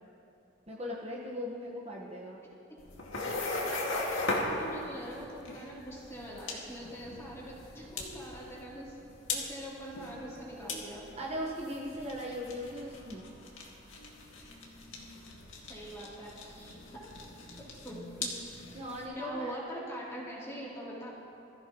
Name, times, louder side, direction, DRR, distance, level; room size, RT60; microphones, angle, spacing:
voice 1, 0.7-2.4 11.2-13.2 18.7-19.5, equal, 30° right, -4 dB, 1.3 m, -38 dB
sound 1, 2.8-19.0, left 2 dB, 75° left, 2.0 m, -39 dB
voice 2, 4.5-9.0 9.3-11.0 15.6-16.8 17.5-18.3 19.1-21.1, right 1 dB, 15° left, -7 dB, 3.1 m, -43 dB
21.5 x 15.0 x 3.0 m, 2.6 s
head